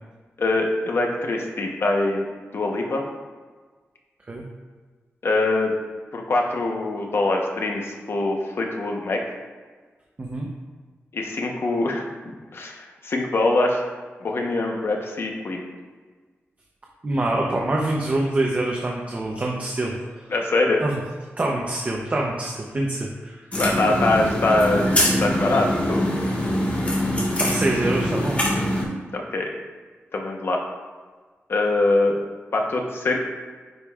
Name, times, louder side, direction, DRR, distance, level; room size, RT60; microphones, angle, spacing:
voice 1, 0.4-2.3 2.5-3.0 5.2-5.7 6.1-9.2 11.1-12.1 12.5-13.8 14.2-15.7 20.3-20.8 23.6-26.1 29.1-29.5 30.1-30.6 31.5-32.2 32.5-33.2, left 2 dB, 60° left, 1 dB, 1.0 m, -23 dB
voice 2, 17.0-20.2 20.8-21.0 21.4-23.4 27.4-28.6, right 2 dB, 35° right, -1 dB, 0.8 m, -25 dB
sound 1, 23.5-28.8, left 1 dB, 30° left, 1.5 m, -23 dB
9.5 x 5.2 x 2.5 m, 1.4 s
wide cardioid pair, 110°, 5 cm